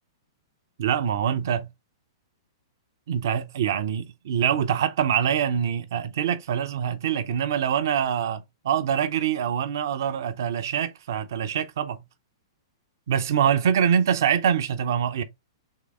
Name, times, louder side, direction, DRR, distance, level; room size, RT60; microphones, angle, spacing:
voice 1, 0.8-1.7 3.1-12.0 13.1-15.2, right 8 dB, 50° right, 0.5 m, -24 dB
3.6 x 3.3 x 3.3 m
figure-of-eight pair, 105°, 2 cm